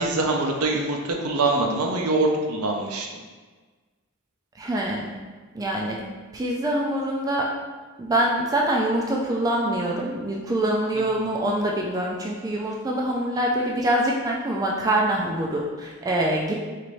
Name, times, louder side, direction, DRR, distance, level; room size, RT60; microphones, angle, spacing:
voice 1, 0.0-3.1 10.9-11.0, right 2 dB, 70° right, 1 dB, 0.5 m, -24 dB
voice 2, 4.6-5.2 5.5-6.0 6.3-7.5 8.0-16.5, right 1 dB, 15° right, -2 dB, 0.3 m, -25 dB
4.2 x 2.6 x 3.1 m, 1.4 s
head